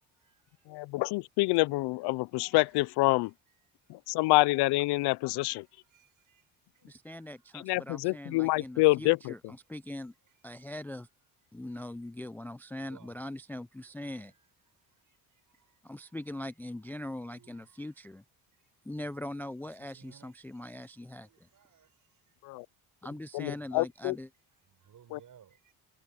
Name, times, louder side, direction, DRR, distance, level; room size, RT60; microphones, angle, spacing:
voice 1, 0.7-3.3 3.9-5.6 7.6-9.3 22.4-22.7 23.3-24.2 25.1-25.2, left 22 dB, 85° left, 0.5 m, -27 dB
voice 2, 5.9-6.4 6.7-6.9 12.8-13.1 14.1-14.2 15.1-15.2 17.3-17.6 19.9-20.3 21.2-21.9 23.5-23.7 24.7-25.7, right 9 dB, 55° right, 6.6 m, -59 dB
voice 3, 6.9-10.1 10.4-11.1 11.5-14.3 15.8-18.2 18.8-21.5 23.0-24.3, left 1 dB, 5° left, 0.4 m, -41 dB
cardioid pair, 105°, 39 cm